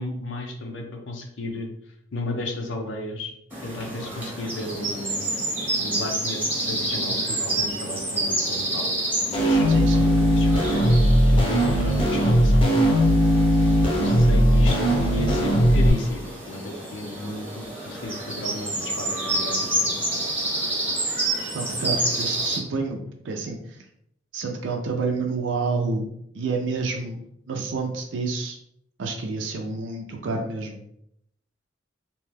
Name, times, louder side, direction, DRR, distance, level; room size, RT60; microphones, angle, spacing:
voice 1, 0.0-1.7 2.1-3.3 3.6-5.4 5.8-8.9 9.3-10.7 11.3-12.9 13.9-20.2 22.9-23.0, left 2 dB, 80° left, 3 dB, 0.6 m, -34 dB
sound 1, 3.5-22.6, right 1 dB, 10° right, 0.8 m, -29 dB
sound 2, 9.3-15.9, equal, 30° left, 0.6 m, -18 dB
voice 2, 9.7-10.1 21.5-23.0 23.2-23.8 24.3-26.1 26.3-28.6 29.0-30.8, right 4 dB, 80° right, 2 dB, 0.4 m, -29 dB
2.7 x 2.2 x 3.2 m, 0.74 s
head